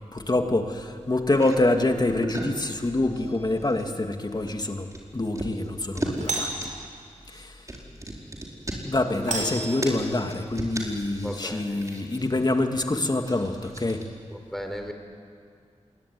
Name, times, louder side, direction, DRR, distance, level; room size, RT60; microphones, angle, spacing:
voice 1, 0.1-6.7 7.3-7.7 8.8-14.0, left 2 dB, 35° left, 5 dB, 2.3 m, -26 dB
sound 1, 1.3-1.6 2.0-2.6 2.9-3.3 3.6-3.9 4.3-6.3 6.6-12.6 13.2-14.1, right 1 dB, 25° right, 4.7 m, -37 dB
Doorbell, 3.1-3.6 6.1-6.8 9.2-10.4, right 2 dB, 85° right, 5.6 m, -33 dB
voice 2, 9.1-9.7 11.2-11.8 14.3-14.9, equal, ahead, 4 dB, 4.0 m, -36 dB
27.5 x 21.5 x 9.7 m, 2.2 s
wide cardioid pair, 85°, 12 cm